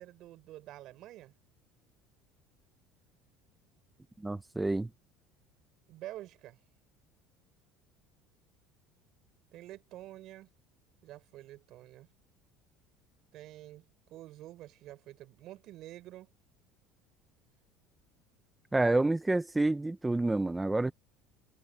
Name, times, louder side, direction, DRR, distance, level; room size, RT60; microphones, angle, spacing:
voice 1, 0.0-1.3 5.9-6.6 9.5-10.5 11.0-12.1 13.3-16.3, right 15 dB, 50° right, 5.7 m, -48 dB
voice 2, 4.2-4.9 18.7-20.9, right 2 dB, 10° right, 0.6 m, -28 dB
cardioid pair, 150°, 0 cm